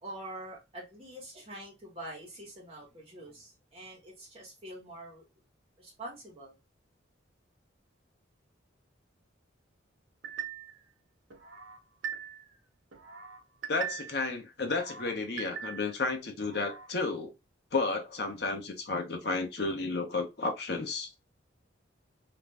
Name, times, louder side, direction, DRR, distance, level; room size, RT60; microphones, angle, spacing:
voice 1, 0.0-5.2 5.8-6.6, right 1 dB, 30° right, 1.1 m, -45 dB
sound 1, 10.2-10.8 11.3-12.5 12.9-14.2 14.6-16.0 16.4-16.9, right 8 dB, 80° right, 0.7 m, -41 dB
voice 2, 13.7-17.3 17.7-21.2, left 3 dB, 55° left, 0.7 m, -32 dB
2.5 x 2.2 x 3.2 m
head